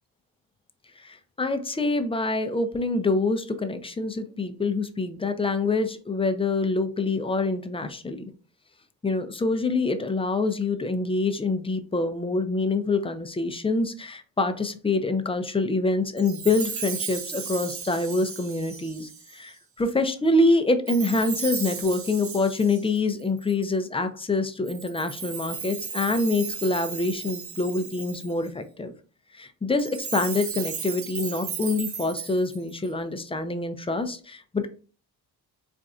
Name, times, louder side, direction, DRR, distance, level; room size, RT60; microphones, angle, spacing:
voice 1, 1.0-8.2 9.0-28.9 29.3-34.7, left 2 dB, 15° left, 9 dB, 0.4 m, -26 dB
Chime, 16.2-19.5 20.9-23.7 24.7-28.5 29.7-32.9, right 6 dB, 35° right, 0.6 m, -36 dB
4.2 x 2.5 x 2.4 m, 0.37 s
cardioid pair, 80°, 39 cm